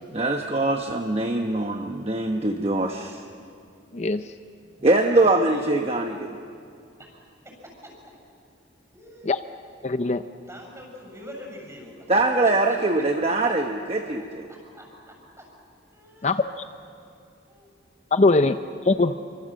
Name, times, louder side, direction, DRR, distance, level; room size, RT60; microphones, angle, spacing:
voice 1, 0.1-3.2 4.8-6.4 12.1-14.5, right 2 dB, 30° right, 4 dB, 1.1 m, -23 dB
voice 2, 3.9-4.3 9.2-9.4 9.8-10.2 16.2-16.6 18.1-18.6 18.8-19.2, left 3 dB, 35° left, 9 dB, 0.6 m, -21 dB
voice 3, 4.8-5.8 7.0-7.2 7.4-8.1 8.9-9.3 10.4-12.0 12.4-13.0 14.2-15.5 15.9-16.5 17.5-17.7, equal, 15° right, 0 dB, 7.1 m, -44 dB
27.5 x 25.0 x 7.6 m, 2.5 s
head